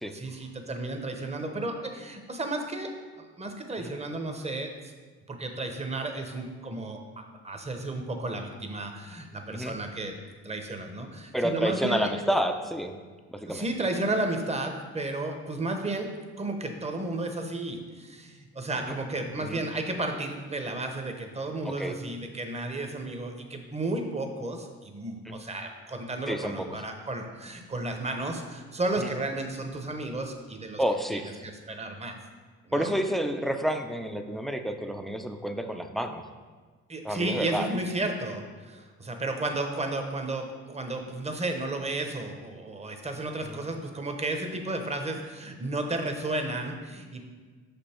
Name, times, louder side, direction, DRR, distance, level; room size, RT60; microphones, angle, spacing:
voice 1, 0.1-4.9 5.3-10.2 10.4-12.1 13.4-30.8 31.1-32.2 32.6-32.9 36.9-47.3, right 2 dB, 20° right, 4 dB, 0.9 m, -33 dB
voice 2, 11.3-13.0 13.3-13.7 19.4-19.6 21.6-22.0 25.2-25.4 26.3-26.7 29.0-29.1 30.8-31.5 32.7-36.2 37.0-37.7 43.4-43.6, equal, ahead, 6 dB, 0.5 m, -29 dB
6.1 x 5.3 x 4.4 m, 1.5 s
cardioid pair, 90°, 30 cm